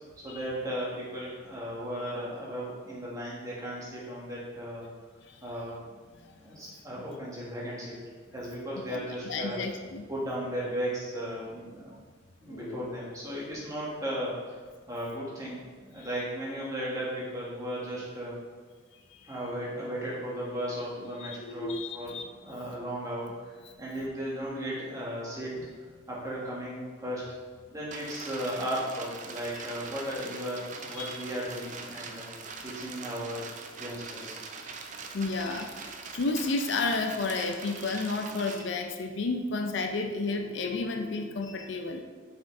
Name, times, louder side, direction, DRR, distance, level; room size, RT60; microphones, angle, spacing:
voice 1, 0.2-4.8 5.4-6.0 6.4-8.0 8.3-9.6 10.1-11.9 12.4-14.6 14.9-18.4 19.2-25.7 26.1-27.3 27.7-32.2 32.6-33.4 33.8-34.4, equal, 15° right, -6 dB, 1.5 m, -36 dB
voice 2, 8.9-10.1 12.5-12.9 16.0-16.1 19.1-19.3 21.2-22.2 22.7-22.8 23.6-23.8 30.9-31.1 35.1-35.7 36.1-42.0, left 3 dB, 60° left, 4 dB, 0.5 m, -32 dB
sound 1, 27.9-38.6, right 4 dB, 40° right, 0.5 m, -42 dB
5.9 x 5.0 x 3.7 m, 1.5 s
head